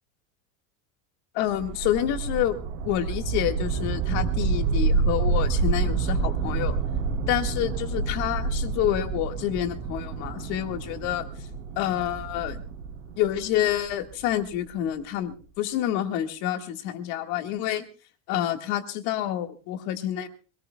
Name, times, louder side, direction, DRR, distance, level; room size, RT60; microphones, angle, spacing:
voice 1, 1.4-2.6 2.8-6.8 7.3-11.3 11.8-12.6 13.2-17.8 18.3-20.3, left 12 dB, 50° left, 6 dB, 1.8 m, -28 dB
sound 1, 1.5-14.6, right 4 dB, 60° right, 3.3 m, -28 dB
25.0 x 19.0 x 2.3 m, 0.35 s
cardioid pair, 180°, 38 cm